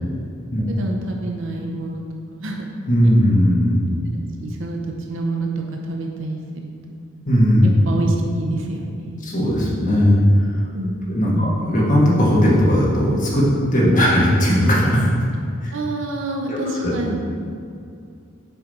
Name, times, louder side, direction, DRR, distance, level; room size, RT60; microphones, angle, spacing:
voice 1, 0.7-2.0 2.3-2.7 3.0-3.1 3.9-7.0 7.6-9.3 10.7-11.6 15.7-17.2, right 2 dB, 70° right, 1 dB, 0.7 m, -28 dB
voice 2, 2.9-3.8 7.3-7.7 9.2-10.2 11.1-13.4 13.7-15.1 15.6-15.7 16.5-16.9, equal, 40° left, -5 dB, 1.5 m, -17 dB
6.9 x 5.2 x 4.1 m, 2.4 s
head